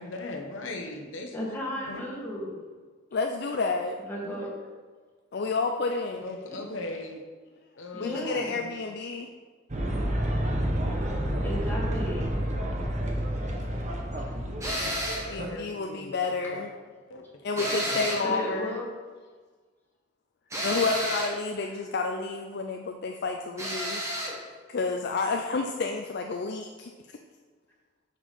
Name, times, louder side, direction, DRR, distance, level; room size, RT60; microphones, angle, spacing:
voice 1, 0.0-2.1 4.2-4.4 6.2-7.2 7.8-8.5 14.7-16.1 16.5-16.7 17.1-17.2 17.9-18.2, left 2 dB, 80° left, 3 dB, 0.9 m, -39 dB
voice 2, 1.3-2.6 4.1-4.5 7.9-8.8 11.4-12.4 14.2-14.3 18.2-18.9, equal, 10° left, -5 dB, 1.7 m, -34 dB
voice 3, 3.1-4.0 5.3-6.2 8.0-9.3 15.3-16.7 17.4-18.8 20.6-24.1 24.7-26.9, left 4 dB, 55° left, 3 dB, 0.4 m, -30 dB
sound 1, 9.7-15.5, equal, 35° right, 1.0 m, -29 dB
sound 2, 14.6-15.3 17.6-18.3 20.5-21.4 23.6-24.4, equal, 15° right, 1.4 m, -31 dB
6.7 x 5.1 x 5.6 m, 1.4 s
head